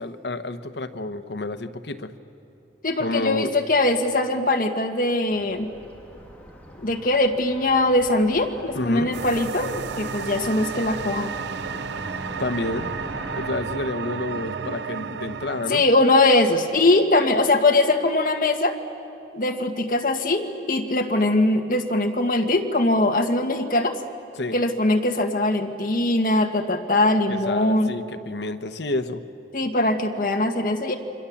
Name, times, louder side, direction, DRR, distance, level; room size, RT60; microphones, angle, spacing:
voice 1, 0.0-2.1 3.0-3.5 8.7-9.1 12.4-15.8 24.4-24.6 27.3-29.2, left 2 dB, 80° left, 10 dB, 1.1 m, -29 dB
voice 2, 2.8-5.7 6.8-11.4 15.7-18.8 19.3-24.0 24.5-27.9 29.5-31.0, left 2 dB, 50° left, 4 dB, 1.7 m, -21 dB
Car passing by, 5.3-13.5, equal, 10° left, 2.7 m, -41 dB
sound 1, 9.1-15.7, right 6 dB, 85° right, 0.6 m, -32 dB
29.0 x 25.0 x 7.2 m, 2.8 s
head